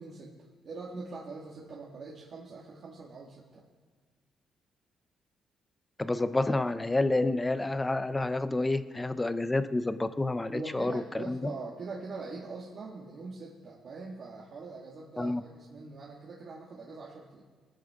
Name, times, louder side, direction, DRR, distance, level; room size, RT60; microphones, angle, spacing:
voice 1, 0.0-3.7 10.5-17.4, right 3 dB, 55° right, -4 dB, 2.0 m, -43 dB
voice 2, 6.0-11.5 15.2-15.4, left 2 dB, 15° left, 12 dB, 0.7 m, -29 dB
20.5 x 10.0 x 3.7 m, 1.5 s
cardioid pair, 90°, 0 cm